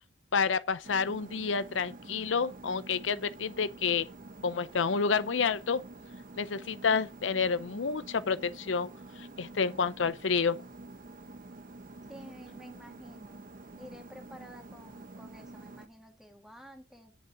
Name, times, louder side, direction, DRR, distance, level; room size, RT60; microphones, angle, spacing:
voice 1, 0.3-4.1 4.4-5.8 6.4-8.9 9.2-10.6, left 5 dB, 85° left, 0.6 m, -29 dB
sound 1, 0.8-15.9, right 2 dB, 45° right, 0.9 m, -48 dB
voice 2, 12.1-13.5 13.8-17.2, equal, 5° right, 2.0 m, -51 dB
10.0 x 5.6 x 8.2 m
head